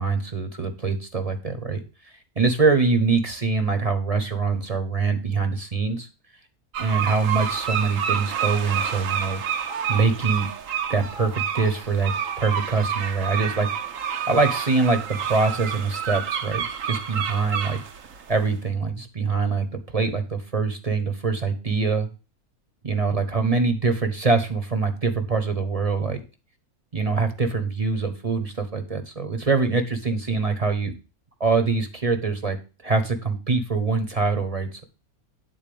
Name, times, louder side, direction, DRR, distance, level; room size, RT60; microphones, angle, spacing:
voice 1, 0.0-1.8 2.4-6.1 6.8-9.4 9.9-10.5 10.9-12.1 12.4-13.7 14.3-17.8 18.3-22.1 22.8-26.2 26.9-30.9 31.4-32.6 32.8-34.8, right 4 dB, 25° right, 7 dB, 1.1 m, -24 dB
sound 1, 6.7-18.4, right 8 dB, 65° right, 1.3 m, -29 dB
9.7 x 4.2 x 6.9 m, 0.32 s
omnidirectional pair, 1.6 m